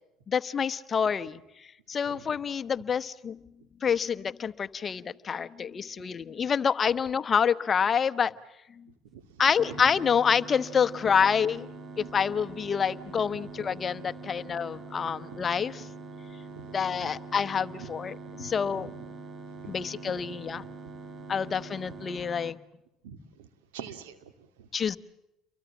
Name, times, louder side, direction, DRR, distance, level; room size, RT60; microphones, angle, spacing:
voice 1, 0.3-1.4 1.9-3.4 3.8-8.3 9.4-11.7 12.0-15.8 16.7-18.9 19.7-20.6 21.3-22.6 24.7-25.0, left 7 dB, 35° left, 13 dB, 1.0 m, -27 dB
voice 2, 9.1-9.8 12.0-12.1 13.3-13.5 14.5-14.6 15.0-15.5 16.5-17.1 17.8-17.9 18.4-18.9 19.6-19.7 20.0-20.3 20.5-20.7 21.4-21.5 23.0-24.7, right 8 dB, 90° right, 11 dB, 2.5 m, -47 dB
sound 1, 9.6-22.5, right 3 dB, 40° right, 2.9 m, -44 dB
30.0 x 23.5 x 7.2 m, 0.88 s
supercardioid pair, 85°, 0 cm